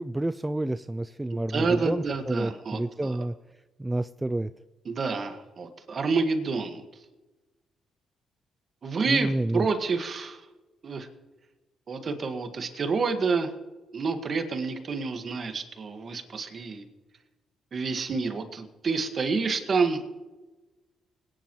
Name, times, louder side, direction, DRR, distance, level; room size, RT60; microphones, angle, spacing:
voice 1, 0.0-3.3 3.8-4.5 9.1-9.7, right 1 dB, 15° right, 12 dB, 0.3 m, -29 dB
voice 2, 1.3-3.3 4.9-6.8 8.8-10.4 10.8-11.1 11.9-13.5 13.9-16.8 17.7-20.2, right 4 dB, 45° right, 6 dB, 1.6 m, -28 dB
20.5 x 10.5 x 3.1 m, 1.1 s
cardioid pair, 90°, 0 cm